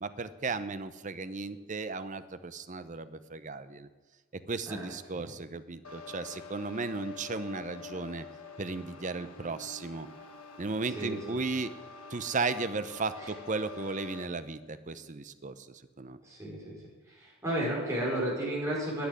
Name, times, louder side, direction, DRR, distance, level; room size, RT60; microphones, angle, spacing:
voice 1, 0.0-3.9 4.3-8.3 8.6-10.1 10.6-11.7 12.1-16.2, right 3 dB, 35° right, 12 dB, 0.7 m, -35 dB
sound 1, 5.8-14.2, left 4 dB, 80° left, 1.6 m, -47 dB
voice 2, 16.2-16.8 17.1-19.1, right 1 dB, 15° right, -4 dB, 4.8 m, -33 dB
10.5 x 9.8 x 9.5 m, 1.3 s
head